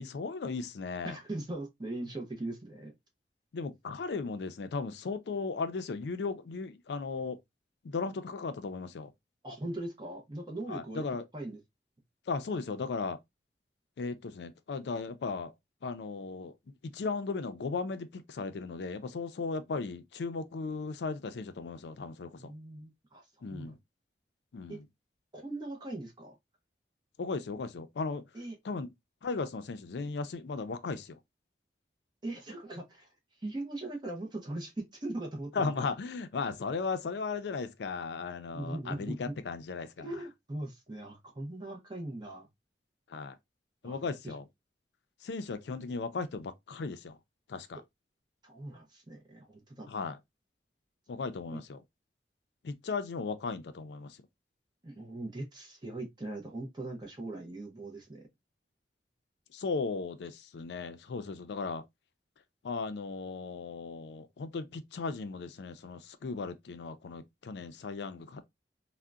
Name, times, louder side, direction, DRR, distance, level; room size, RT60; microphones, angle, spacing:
voice 1, 0.0-1.2 3.5-7.4 7.8-9.1 10.7-11.2 12.3-13.2 14.0-15.5 15.8-16.5 16.8-22.5 23.4-23.8 24.5-24.9 27.2-28.2 28.6-28.9 29.2-31.2 35.5-40.1 43.1-43.3 43.8-44.5 45.2-47.2 47.5-47.8 49.9-50.2 51.1-51.8 52.6-54.2 59.5-61.8 62.6-68.5, left 4 dB, 75° left, 0.4 m, -36 dB
voice 2, 1.0-2.9 9.4-11.0 11.3-11.6 22.4-23.2 23.5-23.7 24.7-24.8 25.3-26.3 28.3-28.6 32.2-33.1 33.4-35.9 38.5-39.3 40.0-42.5 43.8-44.0 48.4-49.9 51.5-51.6 54.8-58.2, right 2 dB, 25° right, 0.6 m, -40 dB
3.7 x 2.1 x 2.3 m
head